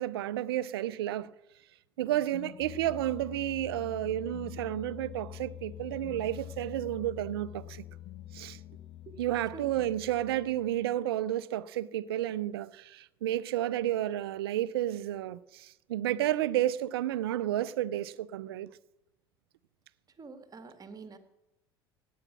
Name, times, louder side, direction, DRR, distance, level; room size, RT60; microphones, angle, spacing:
voice 1, 0.0-1.3 2.0-7.8 8.3-8.6 9.2-18.7, right 13 dB, 75° right, 0.5 m, -31 dB
sound 1, 2.1-10.9, left 14 dB, 50° left, 0.4 m, -46 dB
voice 2, 20.2-21.2, right 4 dB, 30° right, 1.9 m, -47 dB
17.5 x 9.3 x 6.1 m
hypercardioid pair, 65°, 13 cm